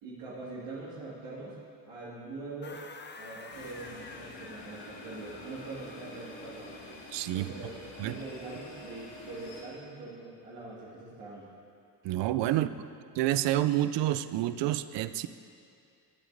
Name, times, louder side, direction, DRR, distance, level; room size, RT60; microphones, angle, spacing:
voice 1, 0.0-1.6 1.9-2.8 3.2-6.7 7.3-11.5, right 3 dB, 80° right, -7 dB, 2.1 m, -43 dB
sound 1, 2.6-7.0, left 3 dB, 20° left, 0.7 m, -49 dB
sound 2, 3.5-9.6, left 1 dB, 85° left, 2.0 m, -47 dB
voice 2, 7.1-7.5 8.0-8.2 12.0-12.7 13.2-15.3, right 14 dB, 60° right, 13 dB, 0.5 m, -28 dB
16.0 x 8.0 x 2.6 m, 2.4 s
supercardioid pair, 65°, 49 cm